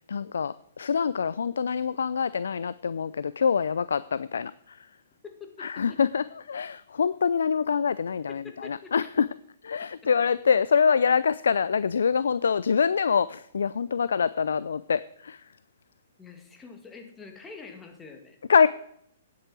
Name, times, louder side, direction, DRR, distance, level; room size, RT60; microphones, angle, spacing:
voice 1, 0.1-4.8 5.6-9.3 9.6-15.4 18.5-18.7, left 6 dB, 75° left, 17 dB, 0.3 m, -25 dB
voice 2, 5.2-6.0 8.3-9.1 16.2-18.4, left 5 dB, 15° left, 4 dB, 1.8 m, -45 dB
9.4 x 7.8 x 6.1 m, 0.71 s
hypercardioid pair, 125°, 0 cm